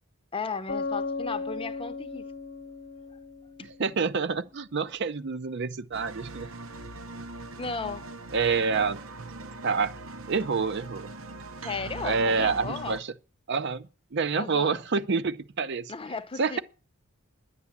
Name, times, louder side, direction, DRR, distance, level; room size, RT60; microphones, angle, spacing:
voice 1, 0.3-2.2 3.6-3.7 7.6-8.1 9.4-9.5 11.6-13.0 14.4-14.8 15.9-16.6, left 4 dB, 25° left, 0.7 m, -35 dB
Bass guitar, 0.7-4.3, left 3 dB, 50° left, 1.0 m, -36 dB
voice 2, 3.6-6.5 8.3-9.0 9.6-9.9 10.3-11.1 12.0-13.1 13.5-15.9 16.4-16.6, right 5 dB, 55° right, 0.6 m, -27 dB
sound 1, 5.9-13.0, right 2 dB, 70° right, 1.0 m, -41 dB
10.5 x 8.4 x 7.2 m
head